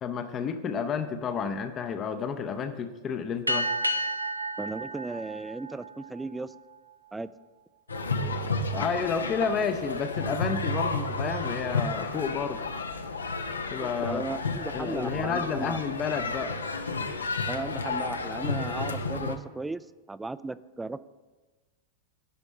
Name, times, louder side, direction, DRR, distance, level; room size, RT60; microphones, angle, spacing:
voice 1, 0.0-3.7 8.2-8.5 8.7-12.6 13.7-14.2 14.7-16.5, left 6 dB, 30° left, 9 dB, 0.6 m, -31 dB
sound 1, 3.5-6.4, right 1 dB, 85° right, 0.6 m, -31 dB
voice 2, 4.6-6.6 7.1-7.3 13.8-15.8 17.5-21.0, right 3 dB, 10° right, 15 dB, 0.3 m, -36 dB
sound 2, 7.9-19.4, left 3 dB, 75° left, 0.6 m, -32 dB
11.0 x 5.3 x 5.6 m, 1.2 s
figure-of-eight pair, 90°, 0 cm